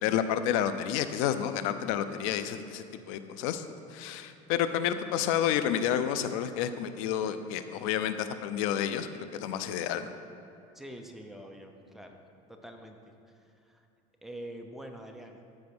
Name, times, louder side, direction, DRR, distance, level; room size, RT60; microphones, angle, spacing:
voice 1, 0.0-3.6 3.9-10.1, left 9 dB, 90° left, 10 dB, 0.6 m, -30 dB
voice 2, 10.7-12.2 12.5-13.0 13.7-13.8 14.2-15.4, right 1 dB, ahead, 3 dB, 0.7 m, -45 dB
14.0 x 4.7 x 6.1 m, 2.7 s
cardioid pair, 145°, 17 cm